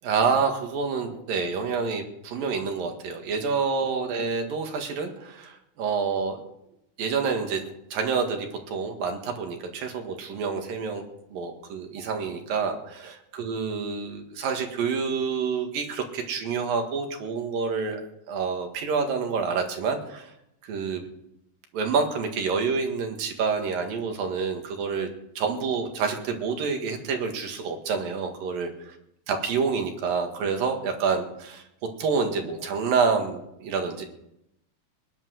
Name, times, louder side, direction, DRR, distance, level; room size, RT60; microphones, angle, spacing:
voice 1, 0.0-6.4 7.0-7.6 7.9-11.0 11.3-18.0 18.3-20.3 20.6-21.1 21.7-25.1 25.4-29.0 29.3-31.6 32.0-34.0, right 5 dB, 70° right, 4 dB, 3.5 m, -28 dB
20.0 x 10.5 x 6.4 m, 0.81 s
omnidirectional pair, 4.3 m